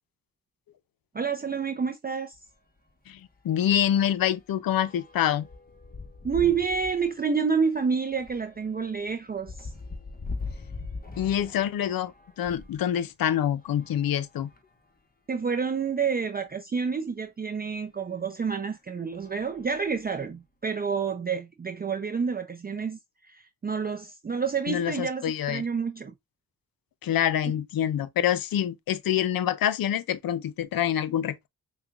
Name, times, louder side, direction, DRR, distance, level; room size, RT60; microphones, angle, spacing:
voice 1, 1.1-2.4 6.2-9.7 15.3-26.1, right 6 dB, 25° right, 0.5 m, -29 dB
sound 1, 2.3-2.5 2.9-3.1 3.3-12.8 13.5-14.9 15.6-15.7 15.9-16.0 17.7-17.8 18.4-18.7 19.1-20.4, left 3 dB, 25° left, 1.1 m, -42 dB
voice 2, 3.1-5.5 11.2-12.1 12.4-14.5 24.7-25.6 27.0-31.5, left 10 dB, 70° left, 0.6 m, -26 dB
5.5 x 2.3 x 2.3 m
cardioid pair, 55°, 37 cm